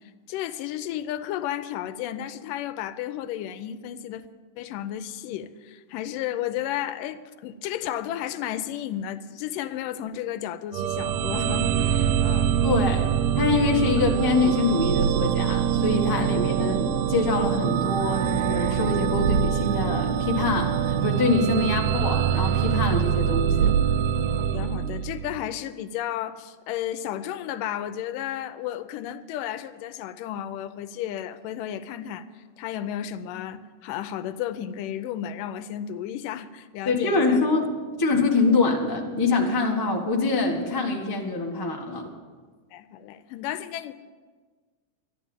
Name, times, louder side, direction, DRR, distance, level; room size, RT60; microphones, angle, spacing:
voice 1, 0.3-4.3 4.6-12.5 21.6-21.7 24.4-37.5 42.7-43.9, left 11 dB, 90° left, 12 dB, 2.3 m, -33 dB
sound 1, 10.7-25.4, right 9 dB, 80° right, 1.5 m, -24 dB
voice 2, 12.6-23.7 36.8-37.7 38.0-42.1, left 3 dB, 25° left, -1 dB, 0.4 m, -25 dB
13.5 x 11.0 x 7.2 m, 1.5 s
omnidirectional pair, 3.7 m